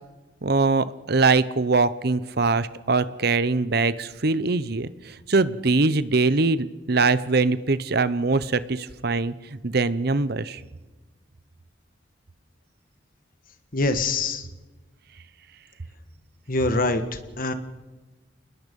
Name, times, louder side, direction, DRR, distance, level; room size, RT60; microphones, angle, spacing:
voice 1, 0.4-10.6, right 3 dB, 55° right, 15 dB, 0.9 m, -22 dB
voice 2, 13.7-14.5 16.5-17.0 17.4-17.5, left 2 dB, 50° left, 8 dB, 1.6 m, -23 dB
27.5 x 20.5 x 5.4 m, 1.2 s
head